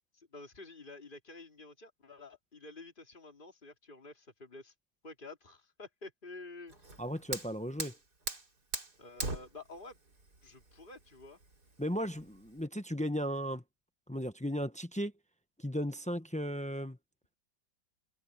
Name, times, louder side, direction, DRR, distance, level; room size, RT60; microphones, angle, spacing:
voice 1, 0.1-4.7 5.0-6.7 9.0-10.0 10.4-11.4, left 2 dB, 25° left, 3.0 m, -50 dB
Fire, 6.7-12.7, right 3 dB, 60° right, 4.8 m, -42 dB
voice 2, 7.0-8.0 11.8-13.6 14.1-15.1 15.6-17.0, equal, 10° left, 0.3 m, -35 dB
omnidirectional pair, 1.9 m